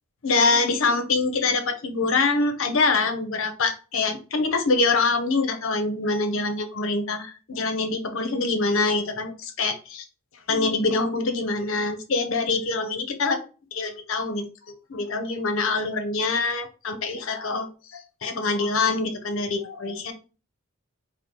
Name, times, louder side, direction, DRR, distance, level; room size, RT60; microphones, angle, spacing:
voice 1, 0.2-10.0 10.5-13.4 13.7-20.1, left 3 dB, 65° left, 7 dB, 0.7 m, -25 dB
4.5 x 2.1 x 3.7 m, 0.34 s
head